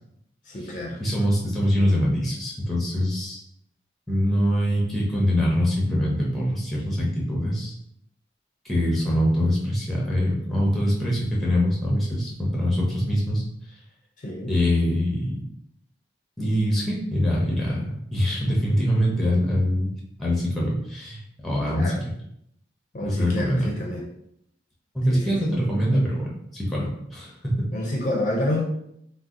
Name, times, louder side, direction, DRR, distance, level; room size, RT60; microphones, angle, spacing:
voice 1, 0.5-1.0 14.2-14.5 21.7-22.0 22.9-24.1 25.1-25.4 27.7-28.6, left 1 dB, 40° left, -1 dB, 0.5 m, -29 dB
voice 2, 1.0-3.4 4.1-7.7 8.6-13.4 14.5-15.5 16.4-19.9 20.2-21.9 23.0-23.7 24.9-27.7, equal, ahead, -4 dB, 0.6 m, -24 dB
2.6 x 2.0 x 3.6 m, 0.74 s
head